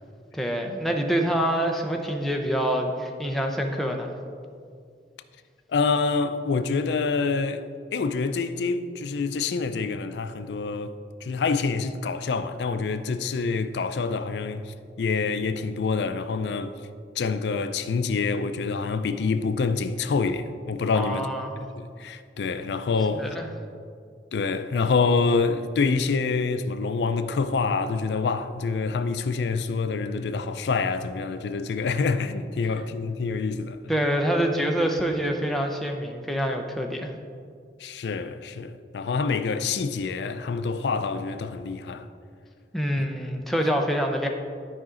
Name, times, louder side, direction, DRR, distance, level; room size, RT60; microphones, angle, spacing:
voice 1, 0.3-4.1 20.9-21.5 23.1-23.5 33.9-37.1 42.7-44.3, equal, ahead, 0.6 m, -26 dB
voice 2, 5.7-7.6 7.9-10.9 11.2-16.7 17.2-21.3 21.8-23.4 24.3-33.8 37.8-42.1 43.0-43.1, left 4 dB, 75° left, 0.4 m, -26 dB
12.0 x 5.1 x 3.7 m
head